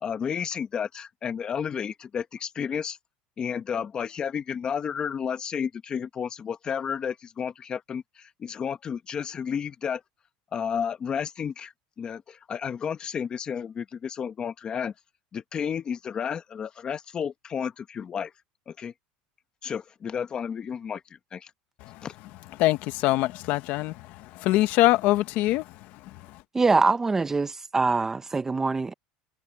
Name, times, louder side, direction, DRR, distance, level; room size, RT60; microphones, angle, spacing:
voice 1, 0.0-3.0 3.4-10.0 10.5-14.9 15.3-18.3 18.7-18.9 19.6-21.5 22.0-22.1, left 7 dB, 25° left, 1.2 m, -32 dB
voice 2, 22.6-25.7 26.0-26.4, left 17 dB, 55° left, 1.2 m, -24 dB
voice 3, 26.5-28.9, right 3 dB, 15° right, 1.0 m, -23 dB
cardioid pair, 145°, 3 cm